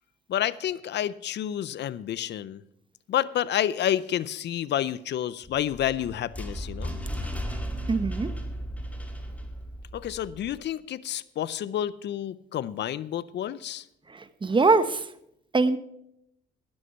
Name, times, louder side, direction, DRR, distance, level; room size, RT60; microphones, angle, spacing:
voice 1, 0.3-2.6 3.1-6.9 9.9-13.8, left 11 dB, 60° left, 18 dB, 0.6 m, -29 dB
sound 1, 5.4-10.6, equal, 5° left, 2.0 m, -35 dB
voice 2, 7.9-8.3 14.1-15.1 15.5-15.8, right 3 dB, 25° right, 13 dB, 1.0 m, -23 dB
13.0 x 9.8 x 5.7 m, 0.76 s
cardioid pair, 90°, 20 cm